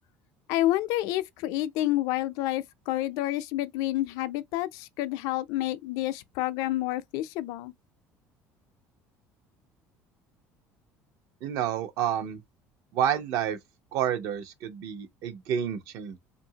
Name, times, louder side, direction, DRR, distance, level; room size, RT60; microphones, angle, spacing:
voice 1, 0.5-7.7, left 15 dB, 75° left, 0.4 m, -29 dB
voice 2, 11.4-12.4 12.9-13.6 13.9-16.2, right 9 dB, 65° right, 0.7 m, -29 dB
2.7 x 2.5 x 2.7 m
cardioid pair, 155°, 6 cm